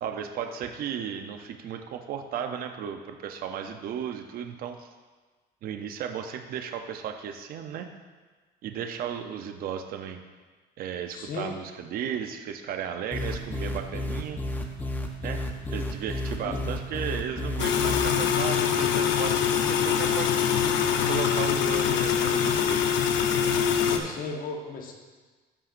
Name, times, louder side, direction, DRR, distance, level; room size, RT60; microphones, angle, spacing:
voice 1, 0.0-4.9 5.6-7.9 8.6-10.2 10.8-14.4 15.2-15.5 15.7-20.6 21.1-22.8, right 8 dB, 50° right, 6 dB, 0.6 m, -35 dB
voice 2, 11.1-11.6 16.4-16.6 23.7-24.9, left 4 dB, 50° left, 1 dB, 1.2 m, -36 dB
sound 1, 13.1-18.3, left 1 dB, 10° left, 0.6 m, -32 dB
sound 2, 17.6-24.0, left 8 dB, 80° left, 0.7 m, -24 dB
13.0 x 5.7 x 2.5 m, 1.3 s
cardioid pair, 145°, 19 cm